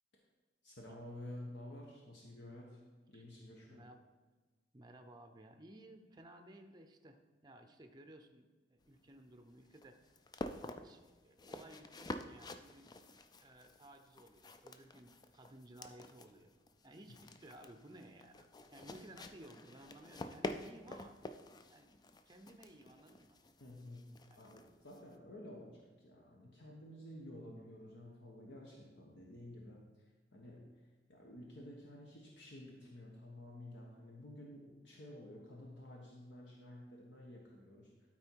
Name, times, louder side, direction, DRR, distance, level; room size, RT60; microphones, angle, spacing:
voice 1, 0.6-3.8 23.6-24.1 24.4-38.1, left 1 dB, 65° left, -2 dB, 1.2 m, -52 dB
voice 2, 3.7-4.0 4.7-10.1 10.7-13.0 13.4-16.5 16.8-21.2 21.7-21.9 22.3-23.4 24.3-24.5, right 1 dB, 25° right, 6 dB, 0.6 m, -57 dB
sound 1, 8.8-25.1, left 2 dB, 20° left, 0.4 m, -49 dB
12.0 x 4.4 x 4.6 m, 1.3 s
head